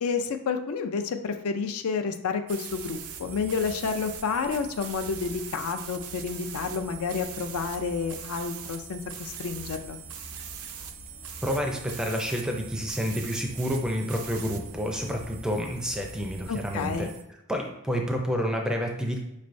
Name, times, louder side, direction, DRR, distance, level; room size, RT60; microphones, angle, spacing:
voice 1, 0.0-10.0 16.5-17.1, left 5 dB, 75° left, 7 dB, 0.4 m, -30 dB
sound 1, 2.5-17.2, right 9 dB, 75° right, 0.4 m, -42 dB
sound 2, 2.7-17.1, left 1 dB, 45° left, 0.8 m, -47 dB
voice 2, 11.4-17.1 17.5-19.2, equal, 5° right, 2 dB, 0.4 m, -29 dB
5.3 x 3.2 x 2.6 m, 0.86 s
head